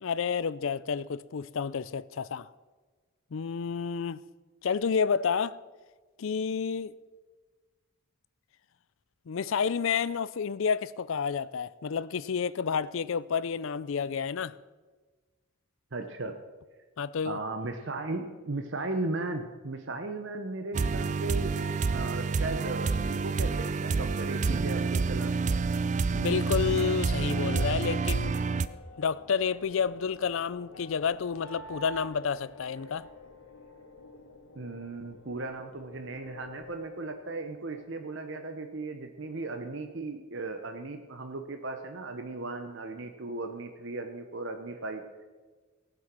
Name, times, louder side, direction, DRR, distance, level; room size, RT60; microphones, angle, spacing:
voice 1, 0.0-2.5 3.3-4.2 4.6-5.6 6.2-6.9 9.3-14.5 17.0-17.4 26.1-28.4 29.0-33.1, left 6 dB, 65° left, 0.4 m, -30 dB
voice 2, 15.9-16.4 17.2-25.6 34.5-45.0, right 2 dB, 55° right, 0.9 m, -36 dB
sound 1, 20.7-28.7, right 4 dB, 35° right, 0.3 m, -28 dB
sound 2, 26.5-37.8, left 2 dB, 85° left, 1.8 m, -48 dB
18.0 x 7.6 x 6.0 m
head